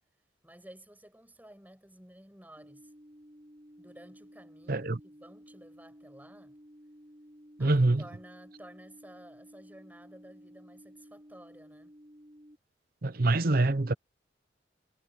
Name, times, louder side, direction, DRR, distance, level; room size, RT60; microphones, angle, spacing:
voice 1, 0.4-2.9 3.8-6.6 7.6-11.9, right 1 dB, 10° right, 6.9 m, -53 dB
sound 1, 2.6-12.6, equal, 25° right, 7.6 m, -54 dB
voice 2, 7.6-8.0 13.0-13.9, right 2 dB, 50° right, 0.8 m, -25 dB
head